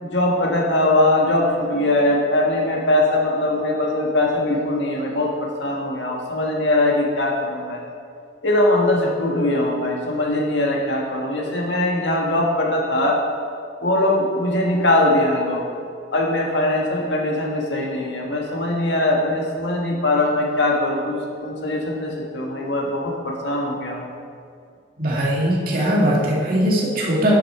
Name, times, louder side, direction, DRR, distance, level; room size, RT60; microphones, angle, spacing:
voice 1, 0.0-7.8 8.4-13.2 13.8-15.6 16.1-24.1, left 1 dB, 75° left, -1 dB, 1.8 m, -21 dB
voice 2, 25.0-27.4, equal, 50° right, -5 dB, 2.1 m, -20 dB
10.0 x 8.4 x 4.4 m, 2.4 s
head